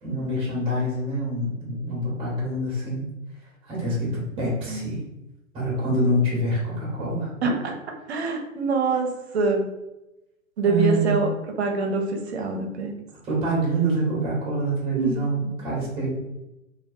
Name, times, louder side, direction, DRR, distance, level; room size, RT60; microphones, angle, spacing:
voice 1, 0.0-3.0 3.7-5.0 5.5-7.3 10.6-11.2 13.2-16.1, right 1 dB, 15° right, -4 dB, 0.8 m, -26 dB
voice 2, 4.4-4.9 7.4-7.7 8.1-9.7 10.6-11.3 11.6-12.9 15.0-15.3, right 3 dB, 55° right, 3 dB, 0.6 m, -25 dB
2.4 x 2.1 x 2.6 m, 0.95 s
figure-of-eight pair, 120°, 40 cm